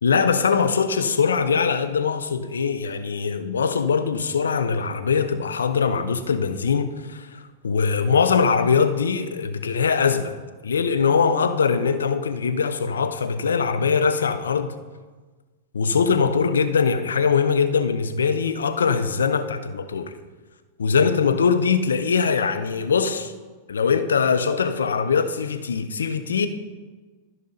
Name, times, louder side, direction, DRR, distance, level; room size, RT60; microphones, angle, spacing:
voice 1, 0.0-10.4 10.6-14.8 15.7-20.1 20.8-23.3 23.7-26.5, left 5 dB, 85° left, 0.7 m, -22 dB
14.0 x 5.4 x 4.0 m
hypercardioid pair, 110°, 0 cm